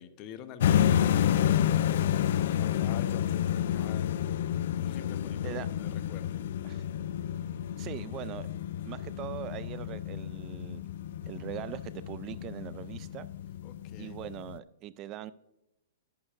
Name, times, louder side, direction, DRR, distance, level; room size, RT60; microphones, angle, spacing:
voice 1, 0.0-4.1 4.8-6.5 13.6-14.2, left 9 dB, 35° left, 0.8 m, -47 dB
sound 1, 0.6-14.6, left 10 dB, 65° left, 0.3 m, -30 dB
voice 2, 7.8-8.5 8.8-10.9 11.3-13.3 14.0-15.3, right 12 dB, 30° right, 0.3 m, -41 dB
11.5 x 9.9 x 2.5 m
hypercardioid pair, 145°, 0 cm